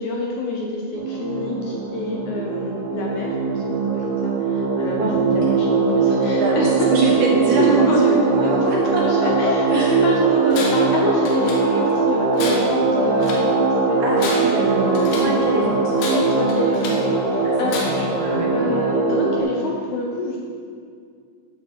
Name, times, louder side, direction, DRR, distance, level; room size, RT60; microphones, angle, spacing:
voice 1, 0.0-6.9 7.6-8.1 8.4-8.5 9.0-14.0 16.1-17.8 18.5-20.4, left 2 dB, 70° left, -1 dB, 1.9 m, -27 dB
sound 1, 0.9-19.4, right 4 dB, 85° right, 3.2 m, -21 dB
voice 2, 4.9-5.6 6.3-10.0 10.3-10.6 14.0-16.0 17.3-17.7 18.2-18.6, right 2 dB, 65° right, -3 dB, 2.5 m, -24 dB
Tools, 10.5-11.0 11.3-12.0 12.3-13.5 14.0-15.4 16.0-17.1 17.7-18.2, left 3 dB, 90° left, 3.0 m, -31 dB
10.0 x 4.9 x 7.0 m, 2.2 s
omnidirectional pair, 4.2 m